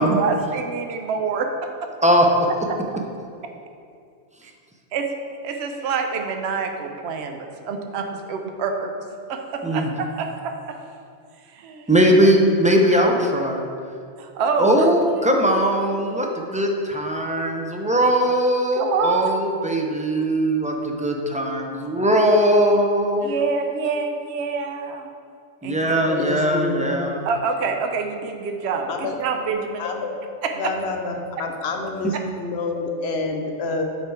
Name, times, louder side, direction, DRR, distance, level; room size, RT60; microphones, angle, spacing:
voice 1, 0.0-1.5 4.9-5.1 5.4-8.9 9.3-10.7 11.5-11.9 14.2-14.9 18.8-19.4 23.2-25.1 25.6-25.9 27.2-29.8 30.6-30.7, right 5 dB, 70° right, 4 dB, 0.9 m, -26 dB
voice 2, 11.9-13.7 14.6-23.3 25.6-27.2, equal, 10° right, 1 dB, 0.4 m, -20 dB
voice 3, 26.1-26.8 28.9-29.2 29.8-30.1 30.5-33.8, left 3 dB, 65° left, 3 dB, 1.0 m, -27 dB
7.2 x 5.0 x 4.6 m, 2.3 s
omnidirectional pair, 1.2 m